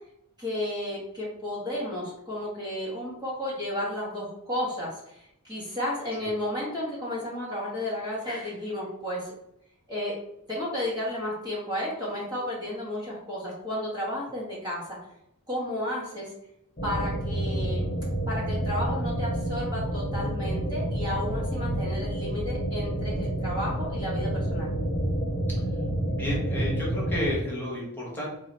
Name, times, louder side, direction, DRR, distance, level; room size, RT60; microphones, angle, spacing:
voice 1, 0.4-9.3 9.9-10.1 10.5-14.8 15.5-16.3 16.8-17.9 18.3-24.7, left 1 dB, 20° right, -6 dB, 1.2 m, -32 dB
sound 1, 16.8-27.4, right 1 dB, 35° left, 0.8 m, -29 dB
voice 2, 26.0-28.3, equal, 10° left, -5 dB, 1.3 m, -32 dB
3.9 x 2.7 x 4.2 m, 0.78 s
head